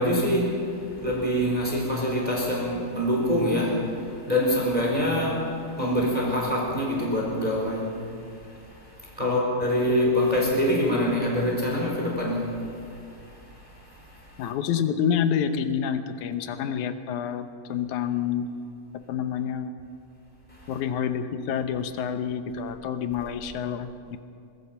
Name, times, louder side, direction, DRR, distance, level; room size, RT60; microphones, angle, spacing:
voice 1, 0.0-14.4 20.5-20.7, equal, 10° right, -2 dB, 4.1 m, -26 dB
voice 2, 14.4-18.4 19.1-19.7 20.7-24.2, left 8 dB, 70° left, 9 dB, 2.2 m, -28 dB
23.5 x 22.0 x 5.8 m, 2.5 s
omnidirectional pair, 4.0 m